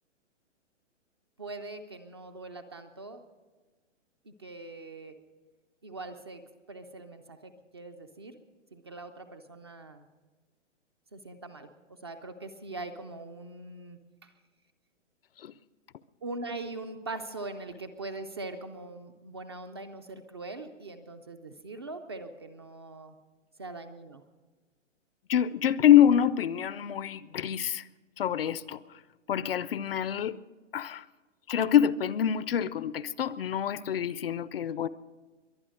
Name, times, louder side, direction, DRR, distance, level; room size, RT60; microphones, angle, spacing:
voice 1, 1.4-3.2 4.2-5.2 5.8-6.4 6.7-8.4 8.7-10.0 11.1-11.7 12.0-14.3 16.2-23.2 23.6-24.2, right 2 dB, 20° right, 0.4 m, -42 dB
voice 2, 25.3-27.8 28.2-28.8 29.3-30.4 30.7-31.0 31.5-34.9, left 10 dB, 50° left, 0.5 m, -25 dB
22.5 x 9.0 x 6.4 m
hypercardioid pair, 160°, 37 cm